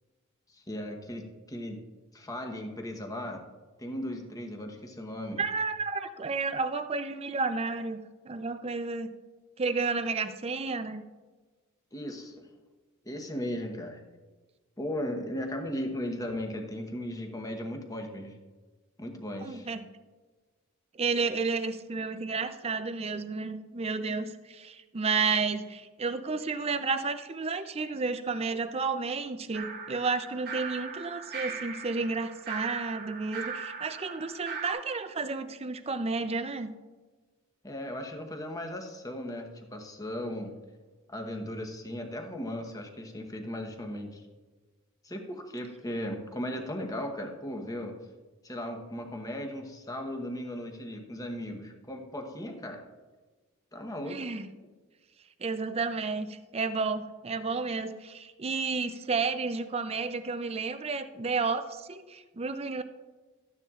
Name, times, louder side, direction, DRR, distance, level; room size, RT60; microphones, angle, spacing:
voice 1, 0.5-1.8 2.1-3.4 3.8-5.4 11.9-12.5 13.0-14.0 14.8-18.4 19.0-19.7 37.6-40.5 41.1-44.3 45.0-48.0 48.4-52.8 53.7-54.3, left 1 dB, 15° left, 3 dB, 1.0 m, -37 dB
voice 2, 5.4-8.0 8.2-9.1 9.6-11.0 19.4-19.9 20.9-36.7 54.0-54.5 55.4-62.8, right 4 dB, 25° right, 10 dB, 0.5 m, -31 dB
sound 1, 29.5-34.7, right 5 dB, 45° right, 0.9 m, -39 dB
13.5 x 9.8 x 2.4 m, 1.3 s
head